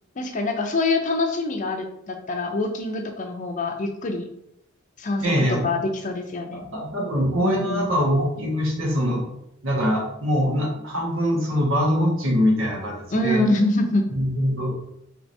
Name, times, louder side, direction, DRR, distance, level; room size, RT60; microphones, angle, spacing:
voice 1, 0.2-4.3 5.0-6.6 7.4-7.9 13.1-14.1, left 2 dB, 40° left, 4 dB, 0.5 m, -25 dB
voice 2, 5.2-5.6 6.5-9.2 9.6-13.4 14.1-14.7, equal, 90° right, -2 dB, 1.2 m, -23 dB
4.6 x 2.9 x 2.7 m, 0.79 s
head